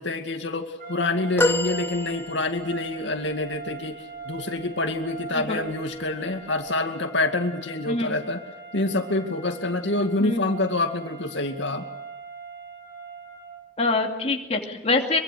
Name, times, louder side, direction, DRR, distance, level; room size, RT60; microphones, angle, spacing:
voice 1, 0.0-4.0 4.3-8.4 8.7-11.9, left 2 dB, 85° left, 5 dB, 2.3 m, -27 dB
sound 1, 0.8-13.6, right 4 dB, 50° right, 7.8 m, -41 dB
sound 2, 1.4-2.8 3.5-3.6, left 2 dB, 15° left, 1.1 m, -26 dB
voice 2, 7.9-8.2 10.2-10.5 13.8-15.2, left 3 dB, 35° left, 2 dB, 2.6 m, -25 dB
24.0 x 23.5 x 6.5 m, 0.97 s
head